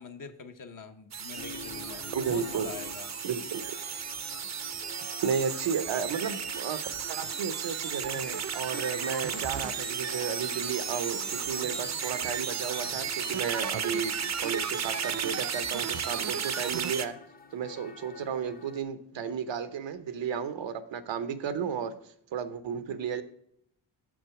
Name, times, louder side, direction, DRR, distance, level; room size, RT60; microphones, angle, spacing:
voice 1, 0.0-3.1, left 5 dB, 45° left, 7 dB, 0.9 m, -44 dB
sound 1, 1.1-17.1, right 7 dB, 40° right, 0.6 m, -34 dB
sound 2, 1.3-18.8, left 3 dB, 20° left, 0.6 m, -48 dB
voice 2, 2.1-2.7 3.2-3.6 5.2-6.8 7.1-17.2 17.5-21.9 22.3-23.2, right 7 dB, 85° right, 12 dB, 0.9 m, -33 dB
6.9 x 6.2 x 4.7 m, 0.69 s
wide cardioid pair, 125°, 44 cm